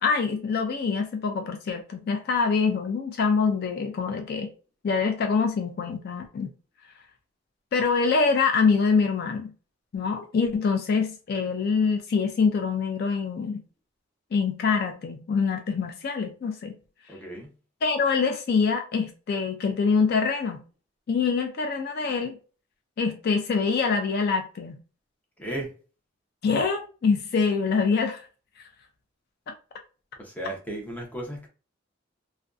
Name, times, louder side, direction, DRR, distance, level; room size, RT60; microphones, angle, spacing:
voice 1, 0.0-4.5 4.8-6.5 7.7-9.5 9.9-13.6 14.3-16.8 17.8-20.6 21.1-22.4 23.0-24.8 26.4-28.3 28.6-28.7 29.5-29.6, left 5 dB, 55° left, 0.4 m, -25 dB
voice 2, 17.1-17.5 25.4-25.7 30.2-31.5, right 1 dB, 10° left, 0.6 m, -35 dB
2.5 x 2.2 x 2.3 m
head